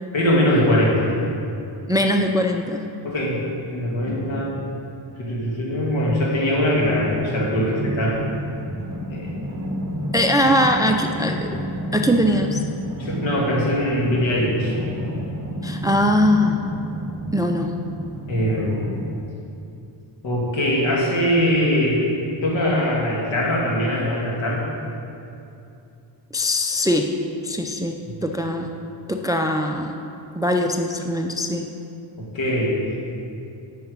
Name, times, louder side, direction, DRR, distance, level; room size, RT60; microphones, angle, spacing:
voice 1, 0.1-1.1 3.0-3.4 3.7-4.6 5.2-8.2 9.1-9.3 13.0-14.7 18.3-18.8 20.2-22.0 22.4-24.6 32.2-32.8, equal, 70° left, -3 dB, 2.7 m, -21 dB
voice 2, 1.9-2.9 10.1-11.5 11.9-12.6 15.6-16.6 17.3-17.7 26.3-27.1 27.4-28.7 29.1-29.9 30.4-31.7, left 1 dB, 10° right, 4 dB, 0.4 m, -21 dB
sound 1, 6.7-19.2, equal, 35° right, 1.2 m, -31 dB
8.5 x 6.8 x 8.3 m, 2.7 s
wide cardioid pair, 125°, 48 cm